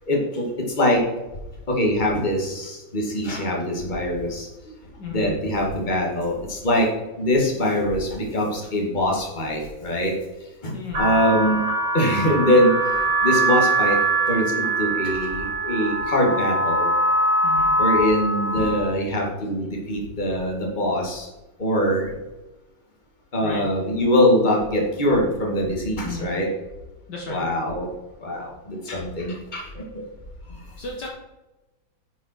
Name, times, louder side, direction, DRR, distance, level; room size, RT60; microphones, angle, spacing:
voice 1, 0.1-1.0 1.7-4.5 5.1-6.9 7.2-10.1 10.4-11.6 11.9-14.0 14.3-16.9 17.8-21.3 21.6-22.1 23.3-26.5 27.3-27.9 28.2-30.0 30.5-30.6, left 1 dB, 25° left, -1 dB, 2.1 m, -23 dB
voice 2, 5.0-5.4 10.7-11.1 17.4-17.7 23.4-23.6 26.0-26.3 27.1-27.4 30.8-31.1, left 3 dB, 60° left, 0 dB, 1.8 m, -34 dB
sound 1, 10.9-18.8, right 2 dB, 85° right, 3.3 m, -22 dB
10.0 x 7.3 x 4.5 m, 1.0 s
omnidirectional pair, 2.2 m